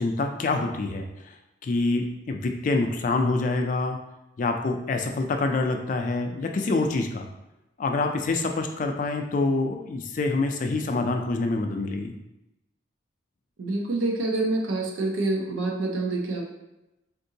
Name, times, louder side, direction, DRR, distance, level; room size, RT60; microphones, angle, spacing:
voice 1, 0.0-1.4 1.6-4.0 4.4-7.3 7.8-12.2, left 3 dB, 40° left, 5 dB, 0.3 m, -26 dB
voice 2, 13.6-16.5, right 2 dB, 90° right, 0 dB, 0.5 m, -27 dB
3.6 x 2.6 x 2.7 m, 0.94 s
head